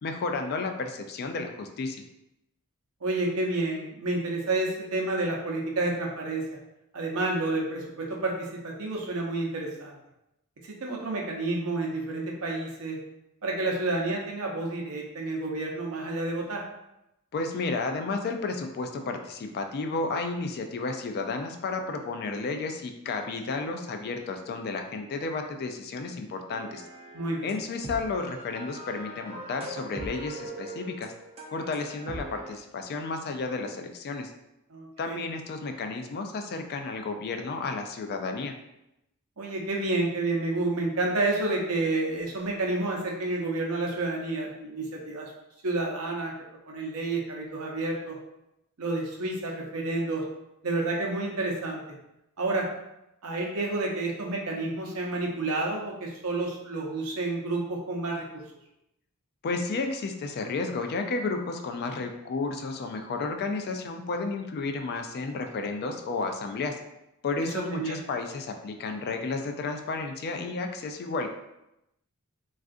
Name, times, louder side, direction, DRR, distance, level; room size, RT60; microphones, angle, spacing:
voice 1, 0.0-2.0 17.3-26.9 27.4-31.1 31.5-34.3 35.0-38.5 59.4-66.8 67.2-71.3, left 3 dB, 45° left, 5 dB, 0.3 m, -32 dB
voice 2, 3.0-6.4 6.9-10.0 10.6-13.0 13.4-16.6 27.1-27.5 34.7-35.2 39.4-45.3 45.6-46.3 46.7-48.2 48.8-50.2 50.6-51.8 52.4-52.7 53.2-58.2 67.4-68.0, right 2 dB, 70° right, -1 dB, 0.7 m, -30 dB
sound 1, 26.5-32.5, right 1 dB, 25° right, 0.4 m, -41 dB
3.5 x 2.4 x 2.4 m, 0.88 s
head